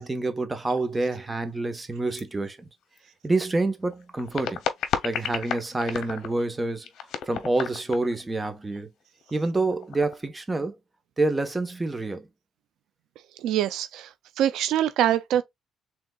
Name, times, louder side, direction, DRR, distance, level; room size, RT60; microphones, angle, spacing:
voice 1, 0.0-2.7 3.2-4.6 5.0-6.9 7.3-8.9 9.3-10.8 11.2-12.3, right 2 dB, 20° right, 1.1 m, -27 dB
sound 1, 0.8-0.9 1.2-1.3 2.1-2.2 2.8-3.0 3.9-6.4 6.8-8.2 8.5-8.6 8.7-8.8 9.2-9.4 9.7-10.3, left 8 dB, 75° left, 0.8 m, -32 dB
voice 2, 13.4-14.1 14.4-15.4, right 11 dB, 85° right, 0.5 m, -24 dB
5.3 x 3.6 x 2.3 m
cardioid pair, 90°, 0 cm